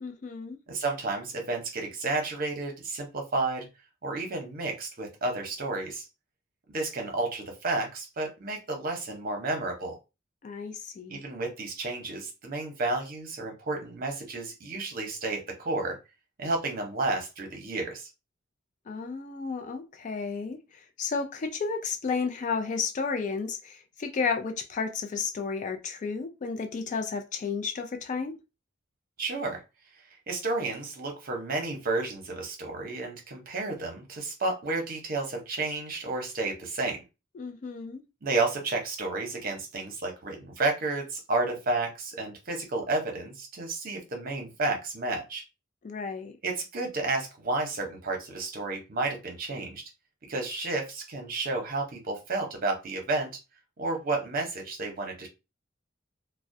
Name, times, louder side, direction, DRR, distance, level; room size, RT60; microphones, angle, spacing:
voice 1, 0.0-0.6 10.4-11.2 18.9-28.4 37.3-38.0 45.8-46.3, left 5 dB, 40° left, 0.3 m, -32 dB
voice 2, 0.7-3.7 4.0-6.1 6.7-10.0 11.1-16.0 16.4-18.1 29.2-29.6 30.3-37.0 38.2-45.4 46.4-49.8 50.3-53.3 53.8-55.3, right 3 dB, 50° right, 0.7 m, -31 dB
2.3 x 2.1 x 2.6 m
head